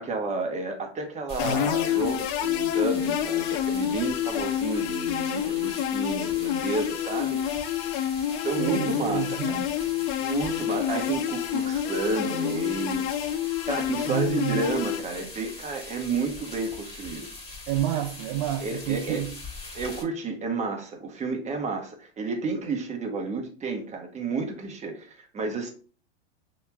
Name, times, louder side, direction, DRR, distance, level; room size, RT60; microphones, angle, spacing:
voice 1, 0.0-7.4 8.4-9.6 10.2-13.1 13.6-17.3 18.6-19.3 19.7-25.7, right 3 dB, 20° right, 1.1 m, -31 dB
sound 1, 1.3-20.0, left 3 dB, 20° left, 1.6 m, -42 dB
sound 2, 1.4-15.0, left 11 dB, 40° left, 0.4 m, -28 dB
voice 2, 8.6-9.7 14.1-14.6 17.7-19.3, right 12 dB, 45° right, 0.4 m, -29 dB
5.5 x 3.0 x 2.3 m
hypercardioid pair, 105°, 32 cm